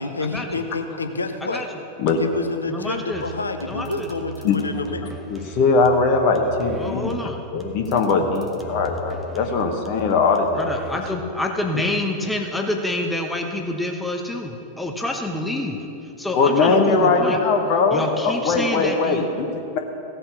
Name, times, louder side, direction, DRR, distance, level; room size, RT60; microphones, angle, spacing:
voice 1, 0.0-1.6 2.2-5.1, left 3 dB, 80° left, 7 dB, 0.8 m, -28 dB
voice 2, 2.7-3.2 3.7-4.1 6.8-7.4 10.6-15.8 16.2-17.4 17.9-19.3, left 1 dB, 5° left, 2 dB, 1.0 m, -27 dB
sound 1, 3.1-11.1, right 2 dB, 15° right, 1.2 m, -38 dB
voice 3, 5.3-7.1 7.5-10.6 16.3-19.8, left 4 dB, 45° left, 3 dB, 1.2 m, -20 dB
16.0 x 5.7 x 6.9 m, 2.8 s
figure-of-eight pair, 90°, 0 cm